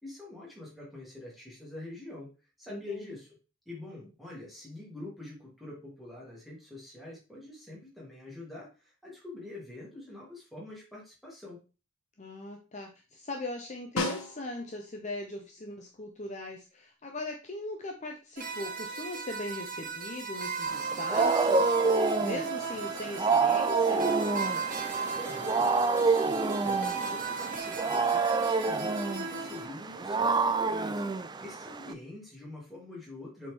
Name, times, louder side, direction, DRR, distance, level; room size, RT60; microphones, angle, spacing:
voice 1, 0.0-2.3 2.6-3.3 3.7-11.6 25.1-33.5, left 2 dB, ahead, -5 dB, 2.4 m, -45 dB
voice 2, 2.7-3.1 12.2-24.1, left 2 dB, 30° left, 2 dB, 0.7 m, -40 dB
Snare drum, 14.0-14.9 19.3-19.4, left 2 dB, 70° left, 1.5 m, -34 dB
sound 1, 18.4-29.7, right 5 dB, 40° right, 1.1 m, -34 dB
Wild animals, 20.7-31.9, right 4 dB, 20° right, 0.3 m, -28 dB
7.4 x 4.3 x 3.6 m, 0.33 s
head